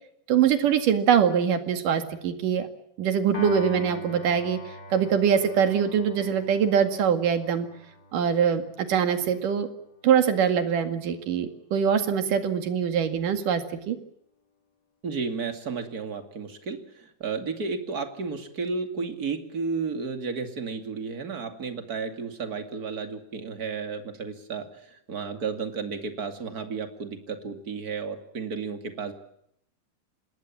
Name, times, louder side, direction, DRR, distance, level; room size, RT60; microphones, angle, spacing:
voice 1, 0.3-2.7 3.0-4.6 4.9-7.7 8.1-9.7 10.0-14.0, right 8 dB, 70° right, 8 dB, 3.6 m, -23 dB
Piano, 3.3-9.7, left 1 dB, 30° left, 3.4 m, -42 dB
voice 2, 15.0-29.1, right 5 dB, 30° right, 7 dB, 2.6 m, -33 dB
26.5 x 20.5 x 7.4 m, 0.72 s
omnidirectional pair, 3.9 m